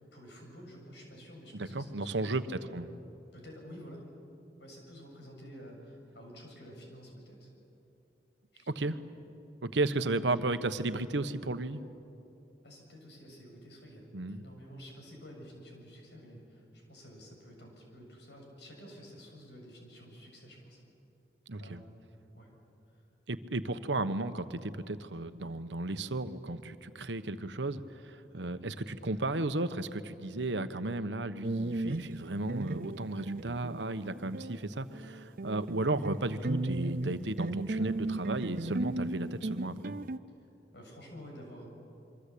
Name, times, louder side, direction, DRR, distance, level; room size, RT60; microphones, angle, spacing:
voice 1, 0.0-2.6 3.3-4.1 4.6-7.5 8.5-8.9 12.6-20.8 21.6-21.9 22.3-22.5 22.9-23.0 35.5-35.7 37.8-38.0 40.7-41.7, equal, 75° left, 1 dB, 7.1 m, -50 dB
voice 2, 1.5-2.9 8.7-9.0 9.6-11.8 14.1-14.4 21.5-21.8 23.3-40.0, right 2 dB, 85° right, 10 dB, 1.1 m, -34 dB
sound 1, 31.4-34.7 34.9-40.2, right 2 dB, 50° right, 0.6 m, -36 dB
27.0 x 24.0 x 8.5 m, 2.8 s
head